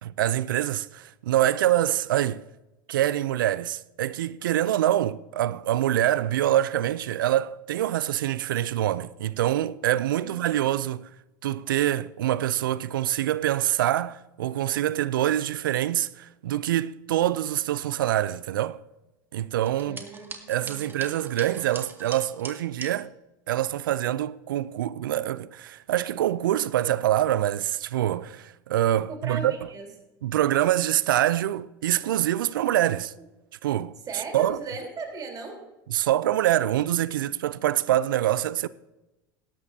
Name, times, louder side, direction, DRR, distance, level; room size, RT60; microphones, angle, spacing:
voice 1, 0.0-2.4 2.9-11.1 11.4-18.8 19.3-20.0 20.5-23.1 23.5-29.5 30.2-33.1 33.6-34.6 35.9-38.7, right 12 dB, 80° right, 0.4 m, -25 dB
sound 1, 19.7-22.9, right 3 dB, 20° right, 1.8 m, -41 dB
voice 2, 19.8-21.2 29.0-29.9 34.1-35.6, right 4 dB, 35° right, 3.7 m, -37 dB
17.5 x 13.0 x 2.7 m
hypercardioid pair, 85°, 11 cm